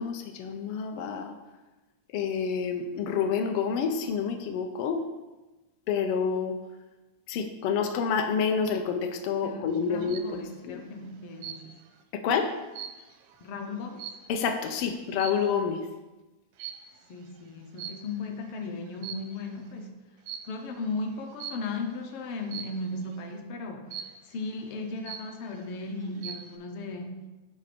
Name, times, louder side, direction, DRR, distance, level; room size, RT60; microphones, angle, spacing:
voice 1, 0.0-1.3 2.1-5.0 5.9-6.6 7.3-10.8 12.1-12.5 14.3-15.8, left 6 dB, 90° left, 5 dB, 1.2 m, -28 dB
voice 2, 9.4-11.8 13.4-14.1 17.1-20.0 20.4-27.3, left 3 dB, 70° left, 4 dB, 1.4 m, -36 dB
sound 1, 9.7-10.4 11.4-11.9 12.3-14.6 15.1-15.6 16.6-17.0 17.8-18.4 18.9-19.6 20.3-20.6 21.4-21.8 22.5-22.9 23.9-24.4 24.8-24.9 25.1-25.7 26.0-26.6, right 8 dB, 85° right, 2.2 m, -41 dB
11.0 x 4.1 x 5.1 m, 1.1 s
omnidirectional pair, 3.4 m